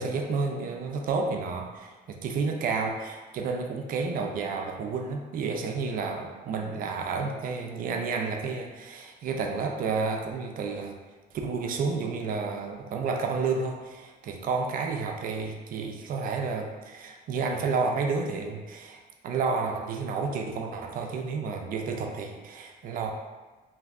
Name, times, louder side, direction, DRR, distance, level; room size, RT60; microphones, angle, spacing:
voice 1, 0.0-10.9 11.4-23.1, right 4 dB, 55° right, 3 dB, 0.4 m, -31 dB
3.3 x 2.6 x 2.4 m, 1.2 s
cardioid pair, 110°, 17 cm